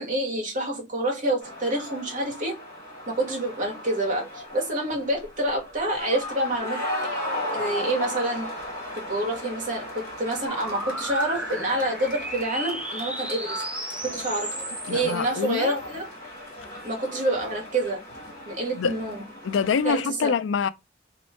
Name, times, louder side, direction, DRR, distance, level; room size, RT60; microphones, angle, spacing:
voice 1, 0.0-2.6 3.1-6.8 7.5-8.5 9.1-13.6 14.0-14.5 14.9-16.1 16.8-18.0 18.5-19.2 19.8-20.3, right 1 dB, 45° right, 1.4 m, -27 dB
sound 1, 1.4-19.9, left 1 dB, 45° left, 1.9 m, -36 dB
sound 2, 10.5-16.0, right 1 dB, 5° right, 0.6 m, -35 dB
voice 2, 14.9-15.7 18.8-19.0 19.4-20.7, left 6 dB, 75° left, 0.4 m, -25 dB
3.1 x 3.0 x 4.2 m
head